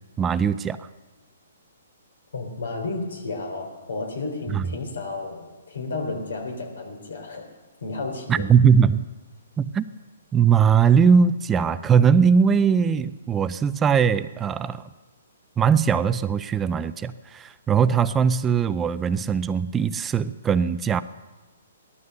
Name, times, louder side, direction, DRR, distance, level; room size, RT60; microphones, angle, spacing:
voice 1, 0.2-0.9 4.5-4.6 8.3-9.1 9.6-9.9 10.3-14.8 15.6-21.0, right 6 dB, 15° right, 13 dB, 0.4 m, -20 dB
voice 2, 2.3-7.5 7.8-8.4, left 3 dB, 80° left, 4 dB, 3.7 m, -32 dB
16.5 x 12.5 x 6.7 m, 1.2 s
hypercardioid pair, 145°, 0 cm